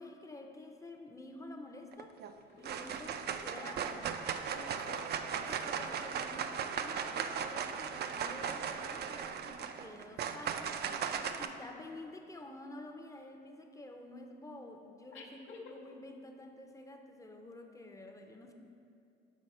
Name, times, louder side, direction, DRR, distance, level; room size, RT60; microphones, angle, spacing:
voice 1, 0.0-2.2 2.6-4.1 5.4-18.5, left 2 dB, 15° left, 4 dB, 0.6 m, -50 dB
sound 1, 1.9-2.3 2.6-11.5, right 7 dB, 55° right, 0.4 m, -37 dB
voice 2, 4.5-5.1 5.4-5.6 10.4-10.5 10.8-10.9 15.1-15.8, left 5 dB, 80° left, -3 dB, 0.8 m, -50 dB
6.2 x 4.0 x 5.4 m, 2.5 s
cardioid pair, 90°, 20 cm